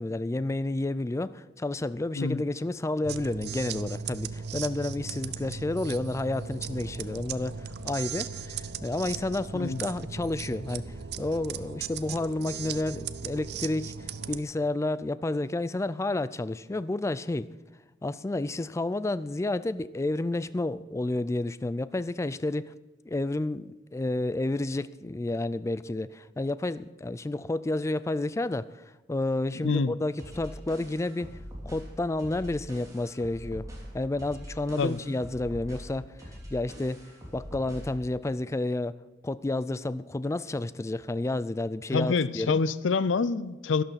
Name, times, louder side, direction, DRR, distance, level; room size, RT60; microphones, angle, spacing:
voice 1, 0.0-17.5 18.0-22.7 23.0-31.4 31.6-33.7 33.9-37.0 37.3-42.6, left 2 dB, 15° left, 16 dB, 0.3 m, -30 dB
sound 1, 3.0-14.4, right 6 dB, 60° right, 0.6 m, -37 dB
voice 2, 29.6-29.9 34.8-35.0 41.9-43.8, left 4 dB, 80° left, 17 dB, 0.5 m, -26 dB
sound 2, 30.2-38.0, equal, 20° right, 3.3 m, -43 dB
12.0 x 11.5 x 5.7 m, 1.2 s
head